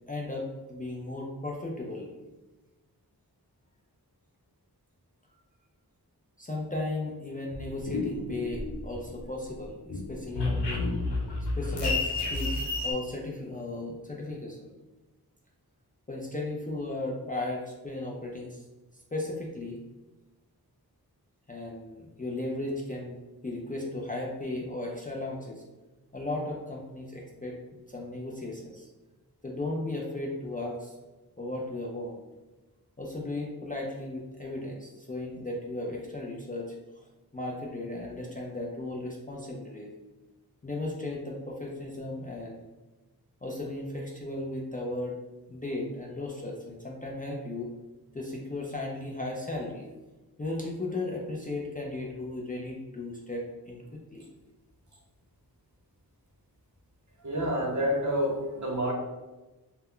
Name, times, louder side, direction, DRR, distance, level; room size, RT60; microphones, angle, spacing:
voice 1, 0.1-2.1 6.4-10.9 11.6-14.7 16.1-18.6 19.1-19.8 21.5-25.6 26.1-28.9 29.4-30.9 31.4-32.2 33.0-37.0 37.3-39.9 40.6-42.7 43.4-45.2 45.5-47.7 48.1-49.9 50.4-53.8 54.1-54.3, left 2 dB, 20° left, -3 dB, 0.4 m, -36 dB
sound 1, 7.5-9.2 9.5-12.9, left 2 dB, 85° left, 0.6 m, -31 dB
voice 2, 57.2-58.9, equal, 45° right, -1 dB, 0.8 m, -28 dB
2.1 x 2.1 x 3.6 m, 1.1 s
wide cardioid pair, 45°, 40 cm